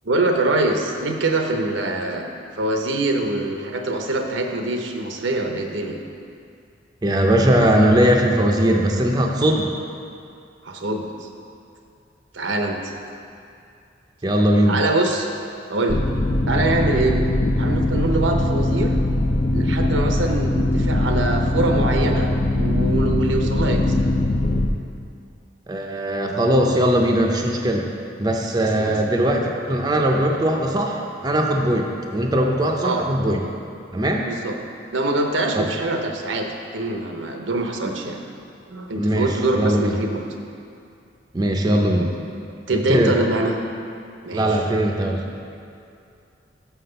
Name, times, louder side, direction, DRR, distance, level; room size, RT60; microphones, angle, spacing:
voice 1, 0.0-2.2 2.6-6.0 10.6-11.3 12.3-12.9 14.7-15.3 15.7-16.0 16.5-17.2 17.6-19.0 19.5-24.0 28.6-29.0 32.8-33.1 34.2-34.6 34.9-38.2 38.7-40.2 42.7-43.6 44.2-44.6, right 2 dB, 85° right, 3 dB, 0.8 m, -24 dB
voice 2, 7.0-9.7 14.2-14.8 25.7-27.9 28.2-33.5 33.9-34.3 35.5-35.6 39.0-39.9 41.3-42.1 42.7-43.1 44.3-45.2, right 1 dB, 20° right, 1 dB, 0.5 m, -20 dB
sound 1, 15.9-24.7, left 1 dB, 35° left, 0.4 m, -21 dB
5.8 x 5.8 x 6.7 m, 2.4 s
head